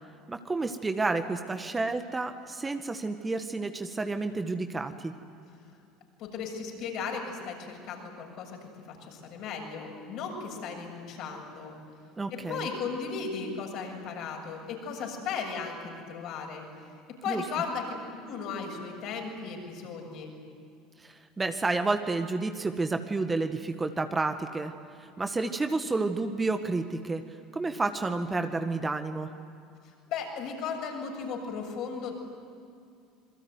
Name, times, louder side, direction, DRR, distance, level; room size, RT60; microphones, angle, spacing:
voice 1, 0.3-5.1 12.2-12.7 17.3-17.4 21.0-24.7 25.0-27.2 27.5-29.3, right 3 dB, 20° right, 7 dB, 1.8 m, -30 dB
voice 2, 6.2-11.7 12.3-16.7 17.2-17.9 18.2-20.3 29.8-32.1, left 5 dB, 55° left, 1 dB, 7.4 m, -36 dB
27.0 x 22.5 x 9.6 m, 2.4 s
hypercardioid pair, 70°, 0 cm